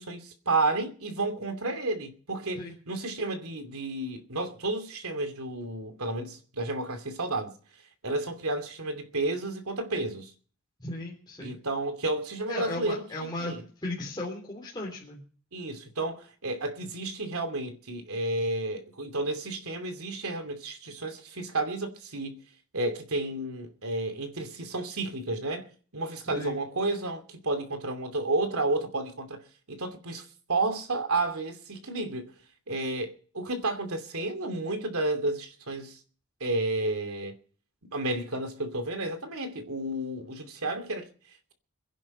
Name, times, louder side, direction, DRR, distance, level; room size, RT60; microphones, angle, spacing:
voice 1, 0.0-7.5 8.0-10.3 11.4-13.6 15.5-22.4 22.7-25.7 25.9-29.4 29.7-32.3 32.7-36.0 36.4-37.3 37.9-41.1, right 2 dB, 75° right, 2.7 m, -31 dB
voice 2, 10.8-11.6 12.5-13.5 13.8-15.2 26.3-26.6, left 2 dB, 20° left, 3.4 m, -36 dB
22.5 x 11.0 x 5.4 m
head